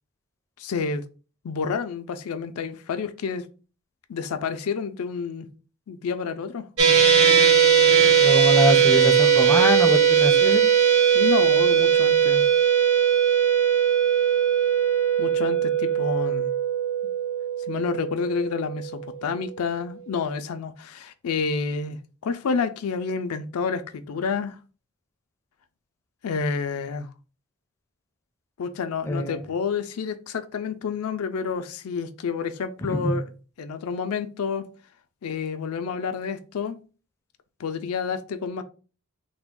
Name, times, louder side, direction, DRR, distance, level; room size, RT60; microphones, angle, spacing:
voice 1, 0.6-1.0 1.4-3.4 4.1-5.5 5.9-6.7 11.1-12.5 15.2-16.5 17.7-24.6 26.2-27.1 28.6-33.2 33.6-34.7 35.2-36.8 37.6-38.6, left 5 dB, 80° left, 0.4 m, -29 dB
sound 1, 6.8-19.1, right 8 dB, 70° right, 0.7 m, -19 dB
voice 2, 8.2-10.6 29.1-29.4 32.9-33.2, left 1 dB, 15° left, 0.4 m, -24 dB
3.4 x 2.2 x 3.5 m
head